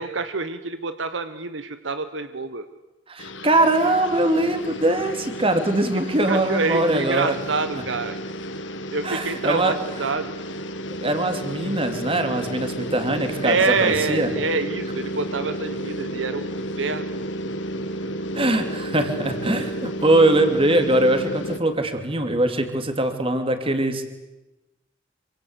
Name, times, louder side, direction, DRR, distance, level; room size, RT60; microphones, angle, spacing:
voice 1, 0.0-2.7 6.3-8.2 8.9-10.3 13.4-17.1, right 4 dB, 80° right, 10 dB, 1.2 m, -26 dB
voice 2, 3.1-7.3 9.0-9.7 11.0-14.3 18.3-24.1, right 1 dB, 30° right, 7 dB, 3.0 m, -22 dB
sound 1, 3.2-21.6, equal, 80° left, 2.1 m, -32 dB
26.5 x 25.5 x 8.2 m, 1.0 s
head